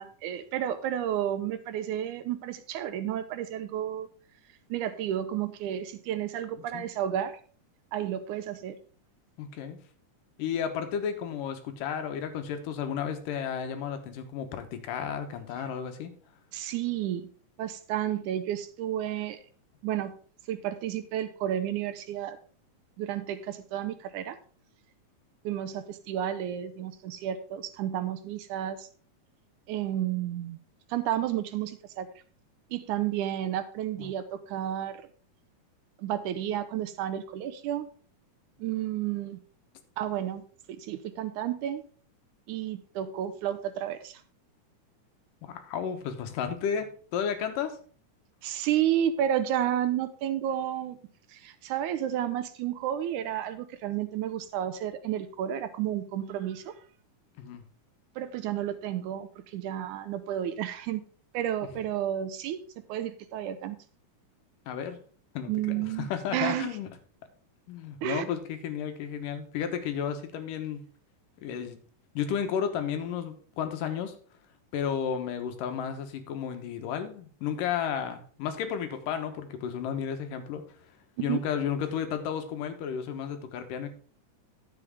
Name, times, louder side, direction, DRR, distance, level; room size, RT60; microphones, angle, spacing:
voice 1, 0.0-4.1 4.7-7.3 7.9-8.8 16.5-17.3 17.6-19.4 19.8-20.2 20.5-22.4 23.0-24.4 25.4-28.9 29.7-30.6 30.9-32.1 32.7-35.0 36.0-37.9 38.6-39.4 40.0-40.4 40.8-41.8 42.5-44.2 48.4-51.0 51.3-56.7 58.2-61.0 61.3-62.6 62.9-63.8 65.5-66.7 68.0-68.2 81.2-81.4, right 11 dB, 80° right, 11 dB, 2.0 m, -31 dB
voice 2, 6.6-6.9 9.4-9.8 10.4-16.1 34.0-34.1 45.4-47.8 57.4-57.6 61.6-61.7 64.7-65.0 65.3-66.9 67.7-70.8 71.4-71.8 72.1-74.1 74.7-80.6 81.2-83.9, left 8 dB, 85° left, 7 dB, 2.8 m, -33 dB
11.0 x 7.7 x 3.6 m, 0.43 s
omnidirectional pair, 3.8 m